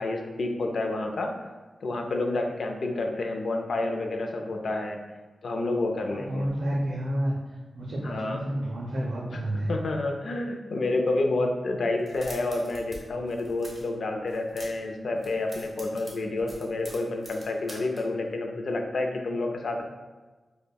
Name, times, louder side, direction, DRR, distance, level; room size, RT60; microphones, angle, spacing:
voice 1, 0.0-1.3 1.8-5.0 5.4-6.5 8.0-8.4 9.7-19.8, left 2 dB, 65° left, 3 dB, 0.4 m, -29 dB
voice 2, 6.1-7.4 7.7-9.7, right 1 dB, 70° right, -4 dB, 0.4 m, -30 dB
sound 1, 12.0-13.0 13.2-13.9 14.3-14.9 15.2-18.0, right 1 dB, 15° right, 0.8 m, -45 dB
5.2 x 2.1 x 2.2 m, 1.3 s
wide cardioid pair, 155°, 0 cm